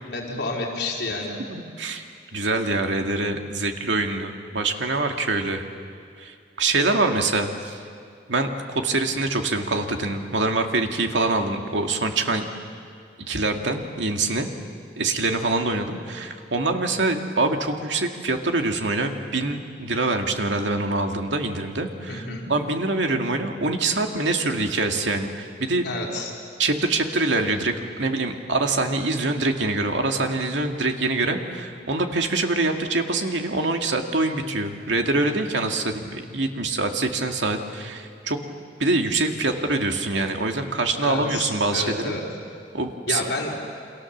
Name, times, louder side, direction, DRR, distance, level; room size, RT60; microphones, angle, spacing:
voice 1, 0.0-1.4 22.1-22.5 25.8-26.3 41.0-42.2 43.1-43.5, left 2 dB, 65° left, -1 dB, 4.3 m, -29 dB
voice 2, 1.5-2.0 2.3-5.6 6.2-7.8 8.3-12.5 13.3-14.5 15.0-25.8 26.6-38.4 38.8-42.2 42.7-43.2, right 2 dB, 80° right, 4 dB, 2.3 m, -25 dB
29.0 x 26.0 x 7.4 m, 2.2 s
head